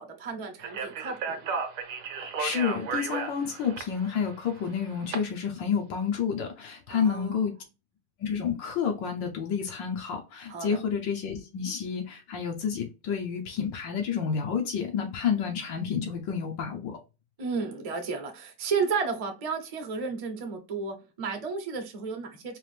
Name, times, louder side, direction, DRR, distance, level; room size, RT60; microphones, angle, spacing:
voice 1, 0.0-1.6 6.9-7.4 10.5-10.8 17.4-22.6, right 5 dB, 40° right, 0.5 m, -33 dB
Speech, 0.6-5.2, right 5 dB, 60° right, 1.0 m, -34 dB
voice 2, 2.2-7.5 8.2-17.0, left 7 dB, 80° left, 1.5 m, -30 dB
4.6 x 2.5 x 3.3 m
omnidirectional pair, 2.0 m